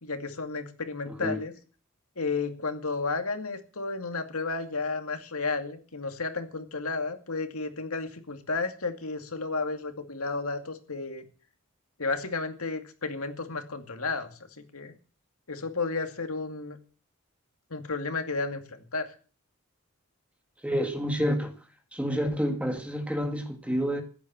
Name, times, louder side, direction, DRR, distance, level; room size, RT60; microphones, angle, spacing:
voice 1, 0.0-1.5 2.2-11.3 12.0-14.9 15.5-16.8 17.7-19.1, left 3 dB, 90° left, 2.3 m, -32 dB
voice 2, 1.1-1.4 20.6-21.5 21.9-24.0, equal, 5° right, 1.9 m, -29 dB
15.0 x 10.0 x 7.4 m
head